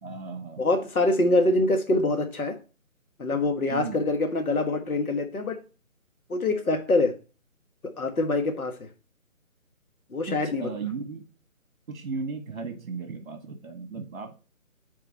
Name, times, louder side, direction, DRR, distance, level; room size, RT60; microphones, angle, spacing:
voice 1, 0.0-0.6 3.7-4.0 10.3-11.2 11.9-14.3, right 4 dB, 55° right, 6 dB, 1.4 m, -35 dB
voice 2, 0.6-2.6 3.2-5.6 6.3-7.1 7.8-8.9 10.1-10.6, left 2 dB, 90° left, 5 dB, 1.6 m, -25 dB
8.5 x 4.6 x 4.2 m, 0.35 s
hypercardioid pair, 170°, 42 cm